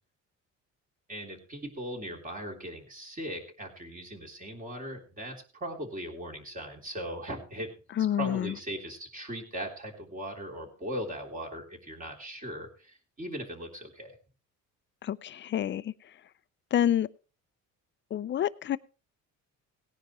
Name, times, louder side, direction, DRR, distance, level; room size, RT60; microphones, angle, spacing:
voice 1, 1.1-7.7 8.2-14.2, equal, 25° right, 3.5 m, -39 dB
voice 2, 8.0-8.5 15.0-15.9 16.7-17.1 18.1-18.8, left 10 dB, 35° left, 0.5 m, -28 dB
18.0 x 10.0 x 3.1 m
cardioid pair, 135°, 31 cm